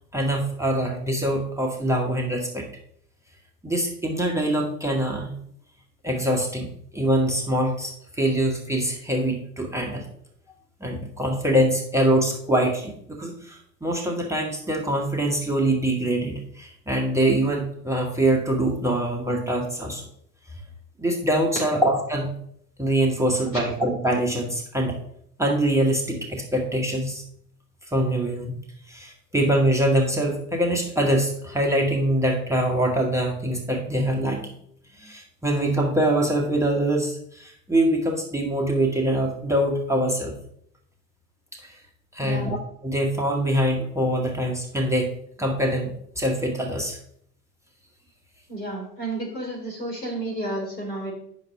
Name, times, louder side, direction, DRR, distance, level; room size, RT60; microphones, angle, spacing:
voice 1, 0.1-2.6 3.6-5.3 6.0-10.0 10.8-20.0 21.0-22.3 22.8-25.0 25.4-27.2 27.9-28.6 28.9-34.5 35.0-40.4 41.5-41.7 42.1-47.0, right 1 dB, 5° right, -1 dB, 1.2 m, -24 dB
voice 2, 42.2-42.5 48.5-51.1, right 1 dB, 75° left, -2 dB, 3.2 m, -31 dB
9.3 x 6.1 x 3.2 m, 0.68 s
figure-of-eight pair, 80°, 49 cm